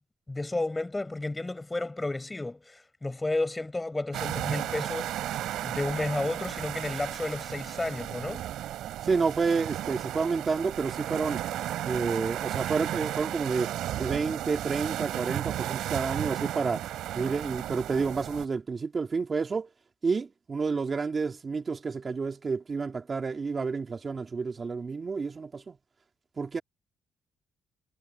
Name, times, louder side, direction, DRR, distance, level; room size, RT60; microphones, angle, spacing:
voice 1, 0.3-5.1 5.6-8.4, left 2 dB, 15° left, 7.8 m, -32 dB
sound 1, 4.1-18.4, right 12 dB, 85° right, 3.8 m, -34 dB
voice 2, 9.0-11.4 11.9-13.7 14.0-16.8 17.1-19.7 20.0-25.8 26.4-26.6, right 4 dB, 35° right, 2.8 m, -30 dB
cardioid pair, 90°, 0 cm